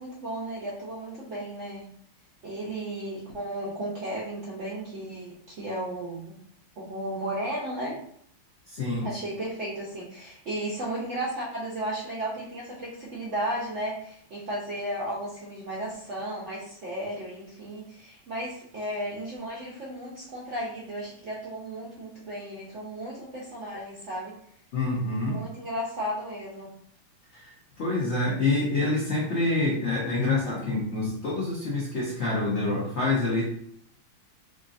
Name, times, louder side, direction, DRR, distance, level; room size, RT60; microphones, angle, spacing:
voice 1, 0.0-1.9 2.4-6.4 6.8-8.0 9.0-24.3 25.2-26.7, right 1 dB, 55° right, -5 dB, 0.8 m, -34 dB
voice 2, 8.7-9.1 24.7-25.4 27.3-27.5 27.8-33.4, left 2 dB, 55° left, -5 dB, 0.8 m, -26 dB
4.8 x 2.5 x 2.5 m, 0.66 s
omnidirectional pair, 2.1 m